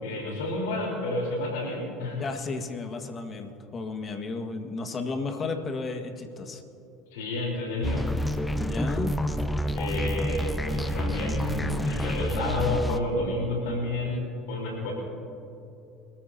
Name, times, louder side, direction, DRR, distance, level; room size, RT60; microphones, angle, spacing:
voice 1, 0.0-2.2 7.1-8.2 9.8-14.9, left 2 dB, 75° left, -1 dB, 3.9 m, -30 dB
voice 2, 2.2-6.6 8.6-9.2, left 3 dB, 35° left, 5 dB, 1.8 m, -33 dB
sound 1, 7.8-13.0, equal, 10° left, 0.9 m, -28 dB
25.0 x 14.5 x 2.9 m, 2.7 s
hypercardioid pair, 75°, 0 cm